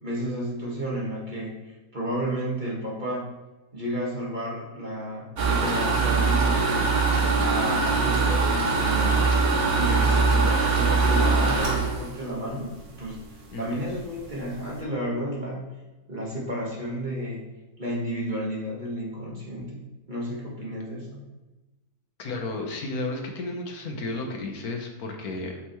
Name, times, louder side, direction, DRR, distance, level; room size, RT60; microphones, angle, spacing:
voice 1, 0.0-3.3 3.7-6.9 7.4-9.2 9.7-13.2 13.6-15.6 16.1-17.5 17.8-19.8 20.1-21.2, equal, 30° right, -4 dB, 1.6 m, -32 dB
sound 1, 5.4-13.1 13.6-13.7 14.0-14.1 14.4-14.7, right 4 dB, 75° right, 1.6 m, -22 dB
voice 2, 13.5-13.8 22.2-25.6, left 2 dB, 75° left, 2 dB, 1.5 m, -33 dB
8.1 x 5.6 x 3.1 m, 1.1 s
omnidirectional pair, 1.6 m